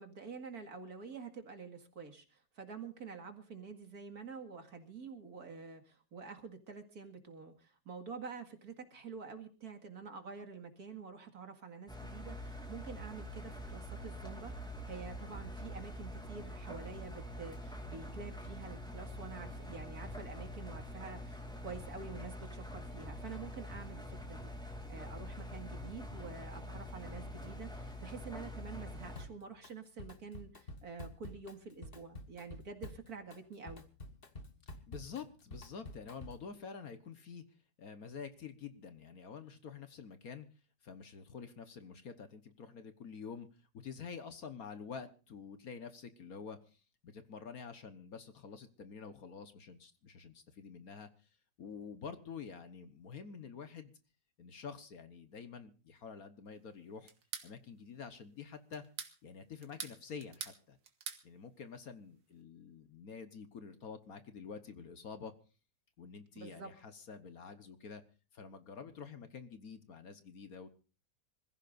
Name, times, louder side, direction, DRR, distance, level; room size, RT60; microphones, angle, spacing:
voice 1, 0.0-14.5 14.9-24.5 24.9-33.8 66.3-66.7, right 5 dB, 55° right, 5 dB, 2.5 m, -48 dB
Engine, 11.9-29.3, equal, ahead, 2.6 m, -45 dB
Drum kit, 29.2-29.7 30.0-36.5, left 1 dB, 30° left, 1.6 m, -49 dB
voice 2, 34.9-37.4 37.8-40.5 40.8-43.5 43.7-51.1 51.6-53.9 54.4-57.1 57.4-58.8 59.2-60.8 61.2-65.3 66.0-68.0 68.3-70.7, left 6 dB, 55° left, 10 dB, 1.5 m, -48 dB
sound 1, 57.1-57.5 58.7-59.2 59.6-60.6 60.8-61.2, right 7 dB, 85° right, 2.3 m, -43 dB
26.5 x 15.5 x 2.6 m, 0.34 s
omnidirectional pair, 2.0 m